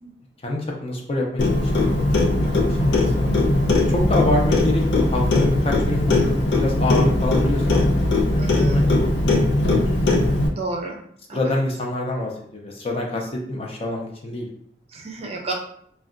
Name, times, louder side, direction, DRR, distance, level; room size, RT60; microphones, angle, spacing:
voice 1, 0.4-3.3 3.7-7.9 8.3-9.7 11.3-14.5, left 1 dB, 35° left, -1 dB, 0.5 m, -26 dB
Clock, 1.4-10.5, left 2 dB, 80° left, 0.5 m, -19 dB
voice 2, 8.4-8.8 10.5-11.0 11.3-11.4 14.9-15.5, right 3 dB, 35° right, 1 dB, 0.4 m, -31 dB
2.3 x 2.2 x 3.7 m, 0.64 s
head